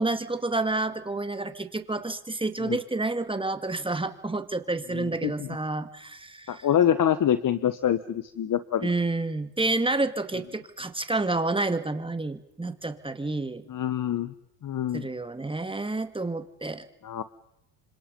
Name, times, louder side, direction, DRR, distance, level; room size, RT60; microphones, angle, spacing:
voice 1, 0.0-6.7 8.8-13.6 14.9-16.8, right 2 dB, 10° right, 9 dB, 2.2 m, -29 dB
voice 2, 4.9-5.5 6.5-8.9 13.7-14.3 14.6-15.1 17.0-17.2, left 10 dB, 40° left, 13 dB, 1.3 m, -26 dB
29.0 x 25.5 x 5.4 m, 0.84 s
supercardioid pair, 75°, 48 cm